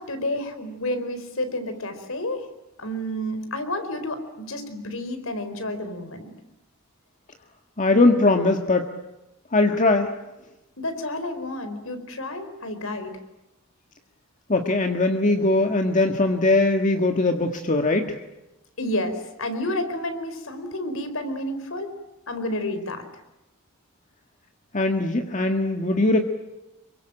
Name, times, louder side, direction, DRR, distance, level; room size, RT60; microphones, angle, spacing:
voice 1, 0.0-2.5 2.8-6.3 10.8-13.1 18.8-21.9 22.3-23.0, left 1 dB, 75° left, 9 dB, 4.6 m, -30 dB
voice 2, 7.8-8.9 9.5-10.1 14.5-18.2 24.7-26.3, left 2 dB, 35° left, 5 dB, 1.7 m, -20 dB
28.0 x 23.5 x 9.0 m, 0.96 s
head